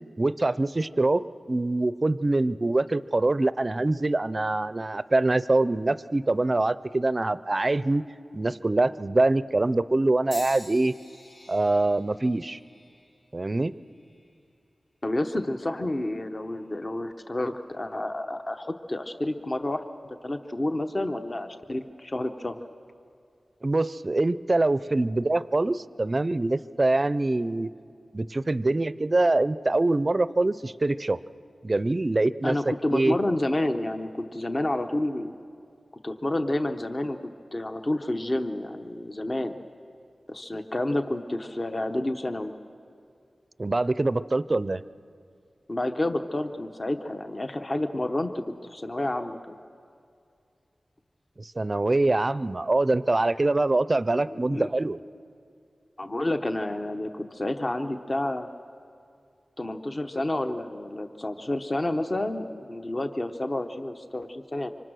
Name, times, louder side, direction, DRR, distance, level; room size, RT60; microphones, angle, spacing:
voice 1, 0.2-8.0 8.3-10.9 11.5-12.6 13.3-13.7 23.6-27.7 28.1-31.2 31.6-32.6 32.9-33.2 43.6-44.8 51.4-55.0, right 2 dB, 35° right, 15 dB, 0.5 m, -24 dB
sound 1, 10.3-14.4 15.1-15.6 16.5-16.7, left 1 dB, 70° left, 3.4 m, -48 dB
voice 2, 15.0-22.6 32.4-35.3 36.0-37.2 37.5-39.6 40.3-42.5 45.7-49.6 54.3-54.7 56.0-58.5 59.6-64.7, left 1 dB, 35° left, 7 dB, 0.9 m, -29 dB
25.5 x 25.0 x 6.3 m, 2.4 s
wide cardioid pair, 90°, 0 cm